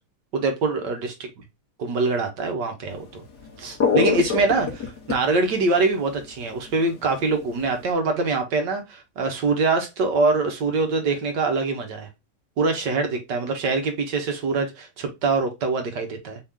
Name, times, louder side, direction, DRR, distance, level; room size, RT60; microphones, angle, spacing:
voice 1, 0.3-1.1 1.8-3.2 3.6-12.1 12.6-16.4, right 3 dB, 75° right, 1.7 m, -24 dB
sound 1, 3.0-3.1 3.4-6.8 7.2-7.9, left 5 dB, 65° left, 2.0 m, -24 dB
4.7 x 2.9 x 3.6 m
omnidirectional pair, 1.9 m